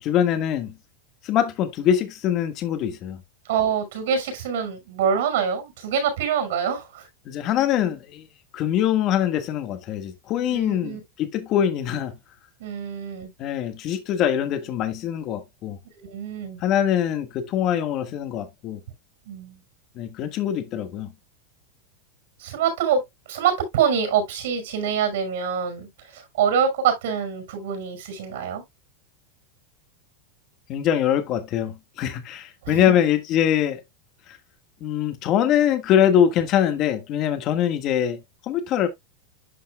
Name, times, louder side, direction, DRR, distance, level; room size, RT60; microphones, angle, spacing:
voice 1, 0.0-0.8 1.2-3.2 7.2-8.3 8.5-12.2 13.4-15.8 16.6-18.8 19.9-21.1 30.7-33.8 34.8-38.9, left 10 dB, 35° left, 1.5 m, -23 dB
voice 2, 3.5-7.0 10.5-11.0 12.6-13.3 16.0-16.6 19.3-19.6 22.4-23.0 23.3-25.9 26.1-28.6 32.6-32.9, right 7 dB, 75° right, 5.8 m, -25 dB
11.5 x 5.5 x 2.2 m
supercardioid pair, 150°, 0 cm